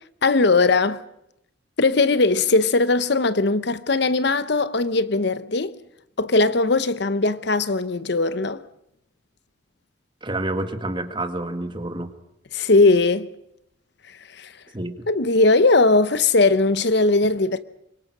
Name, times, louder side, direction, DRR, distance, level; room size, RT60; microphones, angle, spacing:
voice 1, 0.2-1.0 1.8-5.7 6.2-8.6 12.5-13.3 14.4-14.5 15.1-17.6, left 3 dB, 60° left, 0.9 m, -19 dB
voice 2, 10.2-12.1 14.7-15.1, right 1 dB, 25° right, 1.8 m, -28 dB
25.5 x 23.0 x 6.2 m
head